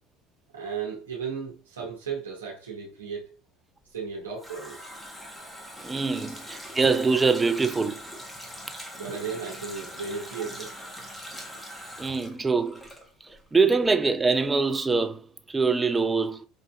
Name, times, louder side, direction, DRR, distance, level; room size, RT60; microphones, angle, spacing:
voice 1, 0.5-3.4 3.9-4.9 9.0-10.9, right 6 dB, 85° right, 0.8 m, -35 dB
Water tap faucet, 3.9-13.5 13.8-13.9, equal, 10° left, 0.9 m, -42 dB
voice 2, 5.8-8.0 12.0-12.8 13.2-16.5, right 4 dB, 20° right, 0.5 m, -24 dB
4.8 x 2.5 x 2.2 m
hypercardioid pair, 70°, 0 cm